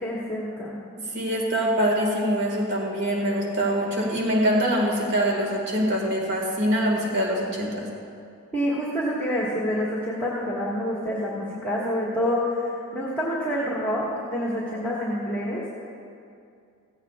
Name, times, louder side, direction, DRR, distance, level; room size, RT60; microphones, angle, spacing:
voice 1, 0.0-0.8 8.5-15.9, equal, 10° left, -7 dB, 1.6 m, -27 dB
voice 2, 1.0-7.9, equal, 50° right, -2 dB, 2.0 m, -24 dB
16.5 x 15.5 x 2.4 m, 2.4 s
head